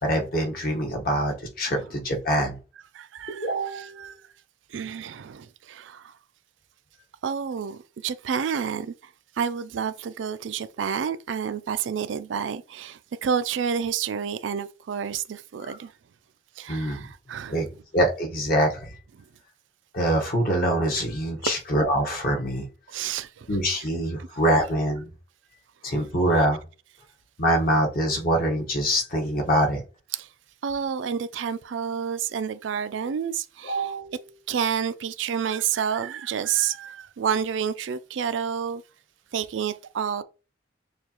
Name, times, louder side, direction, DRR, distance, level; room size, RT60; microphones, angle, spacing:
voice 1, 0.0-2.6 3.3-4.1 16.7-17.0 17.5-17.7 17.9-18.9 19.9-22.6 23.5-25.1 25.8-26.6 27.4-29.8 33.6-34.2, right 1 dB, 55° left, 1.2 m, -24 dB
voice 2, 2.9-4.2 4.7-6.1 7.2-8.9 9.4-15.9 16.6-17.7 19.2-19.3 21.4-21.5 22.9-23.9 30.1-30.3 30.6-33.9 34.5-38.8 39.3-40.2, right 7 dB, 90° right, 0.4 m, -29 dB
6.5 x 2.4 x 2.9 m
head